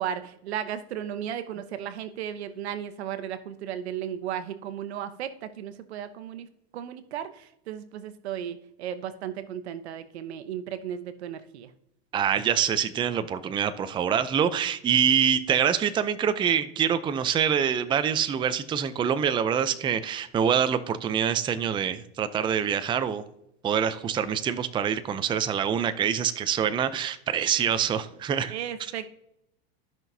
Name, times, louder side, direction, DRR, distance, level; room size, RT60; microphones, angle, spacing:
voice 1, 0.0-6.5 6.7-11.7 27.4-27.5 28.5-29.1, right 9 dB, 85° right, 12 dB, 1.0 m, -35 dB
voice 2, 12.1-23.2 23.6-28.5, right 8 dB, 15° right, 12 dB, 0.5 m, -25 dB
13.5 x 6.0 x 2.7 m, 0.80 s
supercardioid pair, 125°, 32 cm